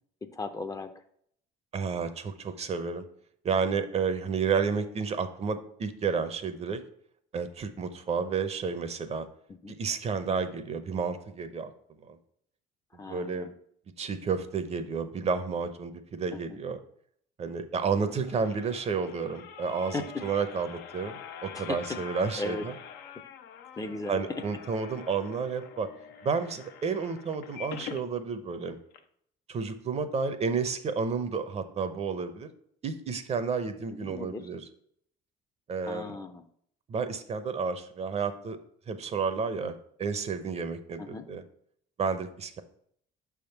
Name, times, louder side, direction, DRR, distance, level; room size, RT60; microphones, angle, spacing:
voice 1, 0.2-0.9 9.6-9.8 12.9-13.5 16.3-16.6 19.8-20.2 21.5-22.0 22.4-22.7 23.0-23.1 23.8-24.4 33.9-34.5 35.8-36.4 41.0-41.3, left 3 dB, 20° left, 8 dB, 0.5 m, -37 dB
voice 2, 1.7-3.1 3.4-6.8 7.3-9.3 9.7-11.7 12.0-12.2 13.1-13.5 14.0-16.8 17.4-19.9 20.2-22.7 24.1-25.9 26.2-28.8 29.5-32.5 32.8-34.6 35.7-36.1 36.9-38.6 38.9-41.4 42.0-42.6, right 5 dB, 40° right, 10 dB, 0.6 m, -31 dB
sound 1, 17.9-28.1 28.5-28.6 28.9-29.0, left 8 dB, 80° left, 0.7 m, -45 dB
6.0 x 3.6 x 5.7 m, 0.66 s
cardioid pair, 110°, 17 cm